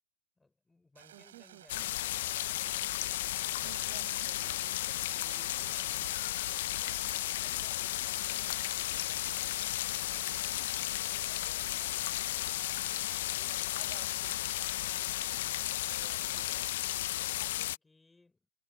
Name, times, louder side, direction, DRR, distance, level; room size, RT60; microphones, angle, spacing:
voice 1, 0.4-4.1 16.5-18.5, left 3 dB, 5° left, 4.6 m, -64 dB
sound 1, 1.0-16.7, right 10 dB, 80° right, 7.2 m, -56 dB
voice 2, 1.1-1.8 3.6-6.1 13.7-14.3 15.9-16.8, right 18 dB, 35° right, 1.3 m, -55 dB
sound 2, 1.7-17.8, left 15 dB, 45° left, 0.4 m, -34 dB
sound 3, 5.9-7.6 7.9-8.0 9.7-12.2, left 11 dB, 70° left, 1.5 m, -56 dB
supercardioid pair, 180°, 0 cm